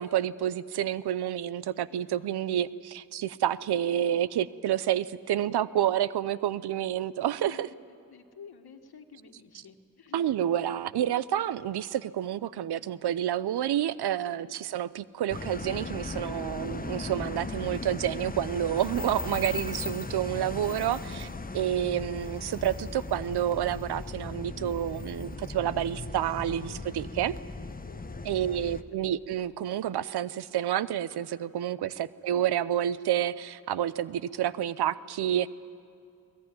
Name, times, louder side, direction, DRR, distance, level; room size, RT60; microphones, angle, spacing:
voice 1, 0.0-7.7 10.1-21.3 21.5-27.3 28.2-35.5, right 11 dB, 85° right, 18 dB, 0.7 m, -29 dB
voice 2, 1.9-2.6 7.4-10.2 13.9-14.5 21.1-21.4 26.5-26.8 27.6-28.6 31.8-32.0, left 6 dB, 75° left, 6 dB, 1.8 m, -52 dB
sound 1, 15.3-28.8, left 3 dB, 20° left, 1.1 m, -37 dB
22.0 x 20.0 x 9.4 m, 2.5 s
cardioid pair, 45°, 38 cm